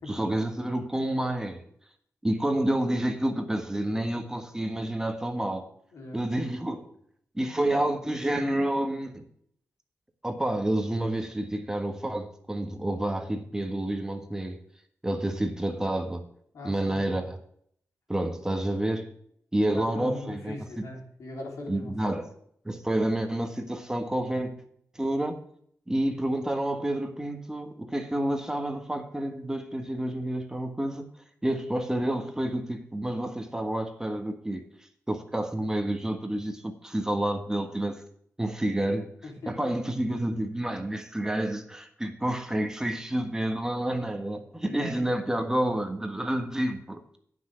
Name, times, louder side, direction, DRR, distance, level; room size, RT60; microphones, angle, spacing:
voice 1, 0.1-1.6 2.2-5.6 6.1-6.9 7.3-9.2 10.2-14.6 15.0-16.3 16.6-17.4 18.1-19.1 19.5-20.6 21.7-22.2 22.6-24.5 24.9-25.4 25.9-31.1 31.4-34.6 35.1-38.0 38.4-39.1 39.5-47.0, right 1 dB, 10° right, 1.4 m, -29 dB
voice 2, 5.9-6.3 16.5-17.2 19.7-22.2 39.2-39.7 44.6-45.2, left 2 dB, 80° left, 3.4 m, -40 dB
9.3 x 6.1 x 7.7 m
wide cardioid pair, 95°, 5 cm